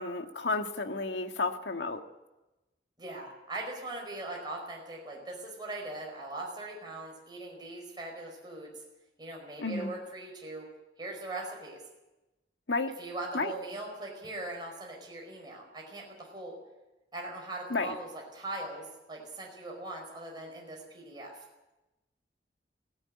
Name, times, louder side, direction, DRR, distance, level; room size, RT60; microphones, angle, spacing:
voice 1, 0.0-2.0 9.6-9.9 12.7-12.9 13.3-13.5 17.7-17.9, left 3 dB, 85° left, 5 dB, 1.8 m, -32 dB
voice 2, 3.0-8.7 9.2-10.7 11.0-11.8 13.0-16.6 17.1-21.3, right 2 dB, 25° right, -1 dB, 4.9 m, -40 dB
17.0 x 16.5 x 9.7 m, 1.0 s
head